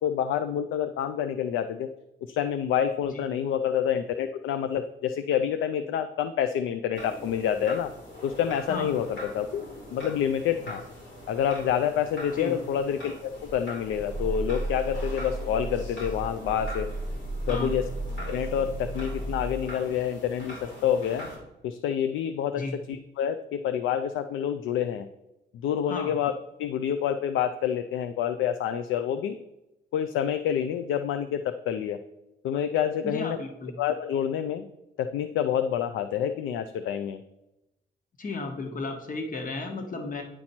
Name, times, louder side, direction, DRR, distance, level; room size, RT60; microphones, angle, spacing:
voice 1, 0.0-1.9 2.2-7.9 8.2-9.6 9.9-10.8 11.3-16.9 17.5-17.8 18.3-21.3 21.6-22.6 22.9-25.1 25.6-26.3 26.6-29.4 29.9-32.0 32.4-33.4 33.8-34.7 35.0-37.2, left 9 dB, 80° left, 10 dB, 0.4 m, -28 dB
sound 1, 6.9-21.4, left 1 dB, 65° left, 2.8 m, -43 dB
Growling, 13.4-19.7, right 1 dB, ahead, 0.6 m, -34 dB
voice 2, 25.9-26.2 33.0-33.7 38.2-40.2, left 3 dB, 40° left, 4 dB, 1.4 m, -34 dB
9.8 x 4.4 x 4.3 m, 0.94 s
cardioid pair, 90°, 20 cm